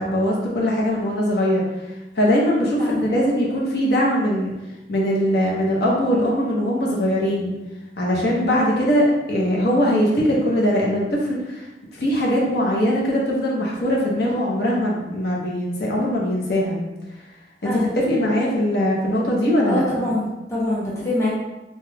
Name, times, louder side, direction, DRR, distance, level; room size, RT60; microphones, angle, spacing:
voice 1, 0.0-1.6 2.1-4.5 4.9-7.5 8.0-11.7 12.0-16.8 17.6-19.8, equal, 60° left, -3 dB, 0.6 m, -21 dB
voice 2, 17.6-18.0 19.6-21.3, left 1 dB, 15° left, -7 dB, 0.6 m, -24 dB
2.8 x 2.2 x 3.2 m, 1.0 s
head